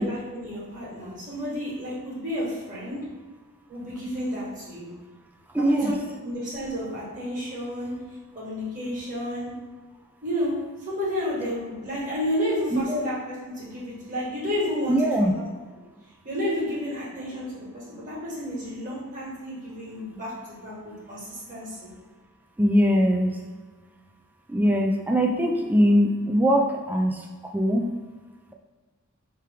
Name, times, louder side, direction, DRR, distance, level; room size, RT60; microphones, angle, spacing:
voice 1, 0.0-3.0 3.7-4.9 5.6-7.9 8.3-9.5 10.2-15.3 16.2-21.9, equal, 35° right, -6 dB, 1.5 m, -31 dB
voice 2, 5.5-5.9 12.7-13.0 14.9-15.3 22.6-23.4 24.5-27.9, equal, 10° right, 2 dB, 0.3 m, -21 dB
4.7 x 3.0 x 3.4 m, 1.4 s
head